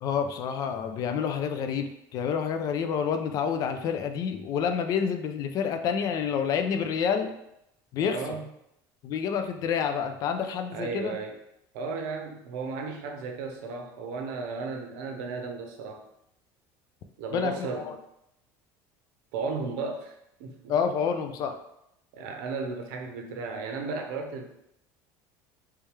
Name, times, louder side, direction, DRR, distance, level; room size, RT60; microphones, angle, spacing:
voice 1, 0.0-7.3 7.9-8.2 9.0-11.2 17.3-17.5 17.8-17.9 20.7-21.5, left 7 dB, 45° left, 7 dB, 0.4 m, -28 dB
voice 2, 8.0-8.5 10.7-11.4 11.7-16.0 17.2-18.0 19.3-20.7 22.1-24.5, right 4 dB, 85° right, 3 dB, 0.7 m, -35 dB
3.3 x 3.2 x 3.2 m, 0.81 s
cardioid pair, 140°, 8 cm